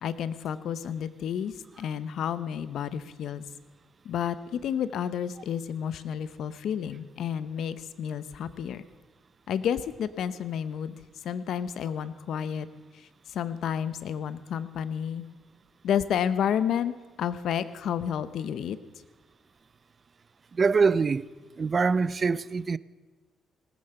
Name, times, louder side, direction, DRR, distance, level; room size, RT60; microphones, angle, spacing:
voice 1, 0.0-3.4 4.0-8.8 9.5-10.9 11.2-12.7 12.9-15.2 15.8-16.9 17.2-18.8, left 8 dB, 70° left, 0.7 m, -31 dB
voice 2, 20.5-21.3 21.6-22.8, right 5 dB, 40° right, 0.4 m, -24 dB
18.5 x 9.5 x 6.7 m
cardioid pair, 90°, 0 cm